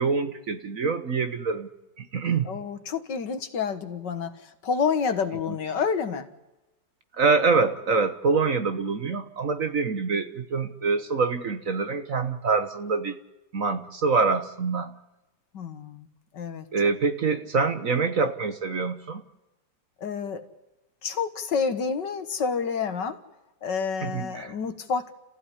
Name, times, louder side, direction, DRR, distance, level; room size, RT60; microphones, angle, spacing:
voice 1, 0.0-1.7 2.0-2.5 7.1-13.2 13.5-14.9 16.7-19.2 24.0-24.5, right 4 dB, 50° right, 9 dB, 1.4 m, -25 dB
voice 2, 2.5-4.3 4.6-6.3 15.5-16.1 16.3-16.7 20.0-20.5 21.0-23.2 23.6-25.1, left 6 dB, 65° left, 9 dB, 2.1 m, -28 dB
30.0 x 15.5 x 9.8 m, 1.0 s
omnidirectional pair, 2.1 m